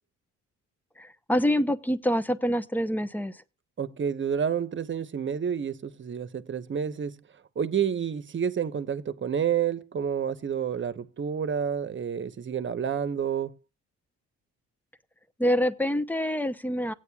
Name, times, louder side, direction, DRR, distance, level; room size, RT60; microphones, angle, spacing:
voice 1, 1.0-3.4 15.4-16.9, equal, 5° left, 0.9 m, -26 dB
voice 2, 3.8-7.1 7.6-13.5, right 7 dB, 40° right, 1.1 m, -29 dB
17.0 x 9.2 x 2.4 m
cardioid pair, 90°, 30 cm